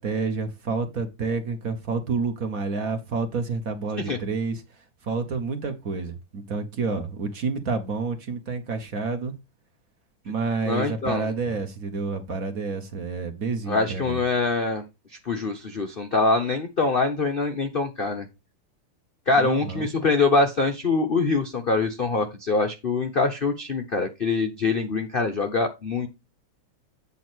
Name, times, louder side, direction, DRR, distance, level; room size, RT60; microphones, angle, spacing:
voice 1, 0.0-4.6 5.0-9.3 10.2-14.2 19.4-19.9, right 4 dB, 45° right, 1.3 m, -29 dB
voice 2, 10.7-11.3 13.7-14.8 15.3-18.3 19.3-26.1, left 3 dB, 75° left, 0.5 m, -24 dB
8.4 x 3.7 x 6.1 m
omnidirectional pair, 2.4 m